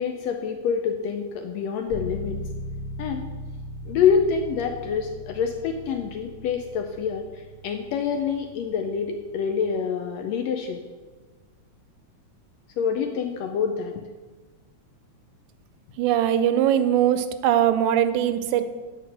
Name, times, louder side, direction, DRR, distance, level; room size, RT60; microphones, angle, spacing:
voice 1, 0.0-2.4 3.0-3.3 3.9-10.8 12.8-13.9, left 7 dB, 80° left, 5 dB, 1.6 m, -26 dB
sound 1, 1.9-9.6, equal, 45° left, 1.5 m, -38 dB
voice 2, 16.0-18.6, right 10 dB, 85° right, 11 dB, 2.0 m, -21 dB
9.3 x 4.4 x 6.4 m, 1.3 s
omnidirectional pair, 3.5 m